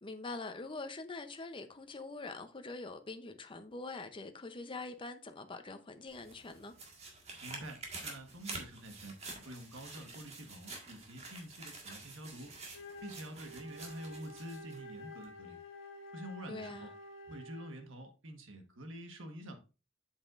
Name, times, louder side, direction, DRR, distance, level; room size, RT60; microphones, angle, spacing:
voice 1, 0.0-6.7 16.5-16.9, left 3 dB, 25° left, 0.7 m, -44 dB
sound 1, 6.1-14.8 15.2-15.3, right 3 dB, 35° right, 1.7 m, -48 dB
voice 2, 7.4-9.1 9.4-12.6 13.0-15.6 16.1-16.9 17.3-19.6, right 1 dB, 70° right, 1.5 m, -47 dB
Wind instrument woodwind instrument, 12.7-17.9, left 1 dB, 70° left, 1.4 m, -50 dB
7.8 x 7.4 x 2.5 m
head